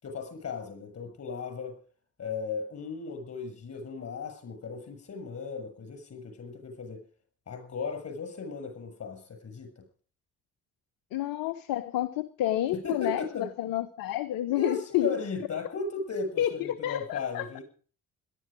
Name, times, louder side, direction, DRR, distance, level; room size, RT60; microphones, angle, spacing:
voice 1, 0.0-1.8 2.2-7.0 7.5-9.7 12.7-13.5 14.5-17.6, left 4 dB, 40° left, 6.5 m, -36 dB
voice 2, 11.1-15.2 16.4-17.6, left 13 dB, 60° left, 1.0 m, -30 dB
18.0 x 12.5 x 5.1 m
figure-of-eight pair, 45°, 39 cm